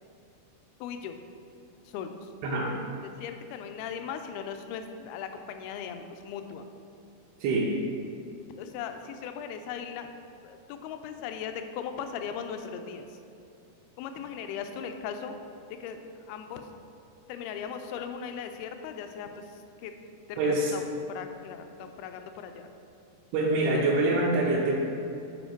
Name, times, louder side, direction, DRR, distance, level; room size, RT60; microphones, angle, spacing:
voice 1, 0.8-1.2 1.9-2.3 3.0-6.6 8.6-10.1 10.4-13.1 14.0-15.4 15.8-16.7 17.3-19.4 19.8-19.9 20.3-20.8 21.1-22.7, left 7 dB, 85° left, 7 dB, 2.4 m, -38 dB
voice 2, 20.4-20.7 23.3-24.8, right 2 dB, 85° right, -6 dB, 2.7 m, -25 dB
7.9 x 5.0 x 4.5 m, 2.7 s
omnidirectional pair, 4.5 m